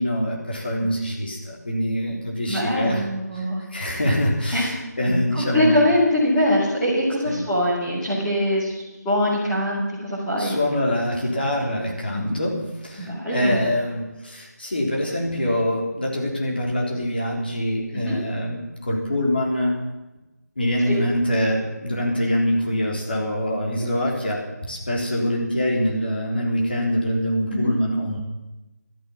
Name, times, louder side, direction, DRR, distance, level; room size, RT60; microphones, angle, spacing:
voice 1, 0.0-3.5 3.7-5.8 7.2-7.5 10.4-19.8 20.6-28.2, equal, 35° left, -2 dB, 3.6 m, -24 dB
voice 2, 2.5-3.6 4.5-4.6 5.3-8.7 9.0-10.5 12.1-12.3 13.0-13.6 18.0-18.2 20.8-21.0 27.5-27.7, left 1 dB, 5° left, -10 dB, 2.2 m, -22 dB
13.5 x 13.5 x 7.1 m, 1.0 s
figure-of-eight pair, 180°, 9 cm